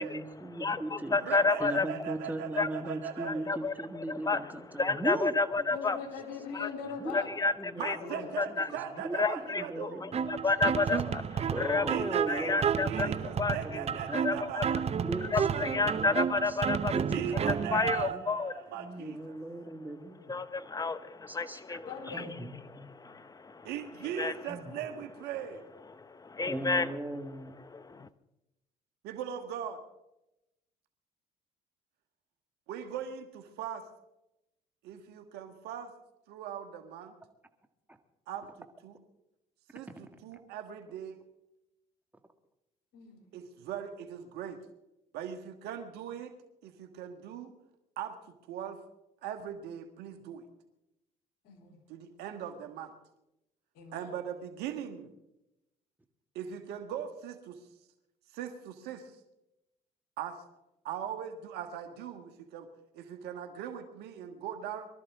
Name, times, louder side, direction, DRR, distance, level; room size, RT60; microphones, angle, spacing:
voice 1, 0.0-5.7 7.0-10.4 11.5-14.5 15.0-16.6 16.9-18.3 18.7-20.4 21.3-21.8 22.1-23.0 24.5-24.7 26.5-27.6, right 1 dB, 10° right, 6 dB, 1.8 m, -39 dB
voice 2, 0.5-1.9 2.6-2.7 3.2-6.0 6.5-6.7 7.1-7.5 7.8-8.7 9.2-11.8 12.3-13.8 14.1-14.7 15.3-16.9 17.5-18.5 20.3-22.2 22.9-23.7 24.1-24.4 25.9-26.9 27.7-28.1, left 3 dB, 20° left, 14 dB, 0.9 m, -31 dB
voice 3, 1.2-3.5 7.8-10.0 11.9-14.9 17.1-19.3 23.6-25.6 29.0-29.8 32.7-33.8 34.8-35.9 36.3-37.2 38.3-38.5 38.8-39.0 39.7-41.2 43.3-44.6 45.1-46.3 46.6-47.5 48.0-48.1 48.5-48.8 49.2-50.4 51.9-52.9 53.9-55.1 56.3-57.5 58.3-59.1 60.2-60.3 60.8-62.7 62.9-64.9, right 8 dB, 75° right, 7 dB, 1.5 m, -39 dB
voice 4, 5.7-7.3 8.0-8.3 21.9-22.5 42.9-43.3 51.4-51.8 53.8-54.2, left 6 dB, 70° left, 3 dB, 3.4 m, -41 dB
sound 1, 10.1-18.1, right 7 dB, 40° right, 0.7 m, -31 dB
23.5 x 13.0 x 3.6 m, 0.91 s
supercardioid pair, 75°, 17 cm